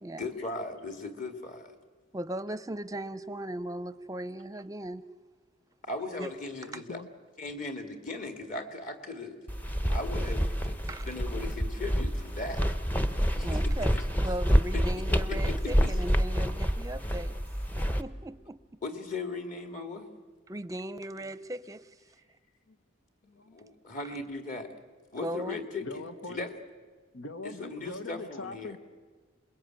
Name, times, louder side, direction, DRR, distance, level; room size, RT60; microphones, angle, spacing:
voice 1, 0.2-1.7 5.8-7.0 7.4-9.4 9.8-12.7 13.4-14.0 14.7-14.8 15.1-15.9 18.8-20.1 23.5-24.7 25.1-25.9 26.3-26.5 27.4-28.8, left 3 dB, 40° left, 5 dB, 2.3 m, -38 dB
voice 2, 2.1-5.1 6.2-6.3 10.9-11.1 13.4-17.4 18.0-18.6 20.5-21.9 24.0-24.1 25.2-25.6, right 1 dB, 15° right, 12 dB, 0.7 m, -38 dB
voice 3, 6.6-7.1 22.7-22.8 23.3-23.6 25.8-26.5 27.1-28.8, left 3 dB, 75° left, 9 dB, 1.4 m, -42 dB
sound 1, 9.5-18.0, equal, 10° left, 0.8 m, -28 dB
27.5 x 21.5 x 9.0 m, 1.4 s
head